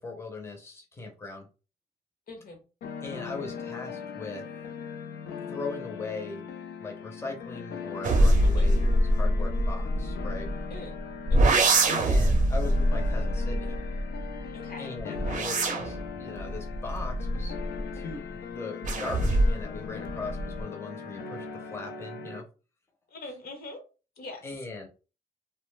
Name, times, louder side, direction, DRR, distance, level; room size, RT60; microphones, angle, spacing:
voice 1, 0.0-1.5 3.0-4.4 5.5-6.4 6.8-10.5 11.9-13.8 14.8-22.4 24.4-24.9, left 3 dB, 15° left, 0.6 m, -39 dB
voice 2, 2.3-2.6 7.5-7.6 8.4-8.7 10.7-11.0 11.3-11.7 14.5-15.5 23.1-23.8 24.2-24.5, left 2 dB, 70° left, 0.8 m, -43 dB
sound 1, 2.8-22.4, left 6 dB, 90° left, 0.5 m, -40 dB
sound 2, 8.0-10.8 11.3-14.4 15.0-18.0 18.8-19.7 20.1-20.6, right 1 dB, 50° right, 0.5 m, -24 dB
2.5 x 2.1 x 3.1 m
wide cardioid pair, 135°, 16 cm